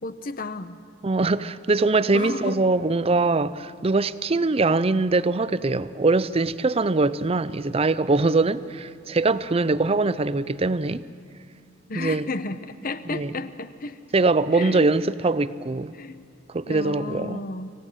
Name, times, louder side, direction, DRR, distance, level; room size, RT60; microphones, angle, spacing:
voice 1, 0.0-0.8 2.1-2.7 11.9-14.0 14.5-14.9 15.2-15.4 15.9-16.2 16.7-17.7, left 3 dB, 45° left, 0.9 m, -33 dB
voice 2, 1.0-11.0 11.9-12.3 13.1-13.3 14.1-16.0 16.5-17.4, right 3 dB, 30° right, 0.5 m, -22 dB
25.0 x 16.5 x 9.1 m
head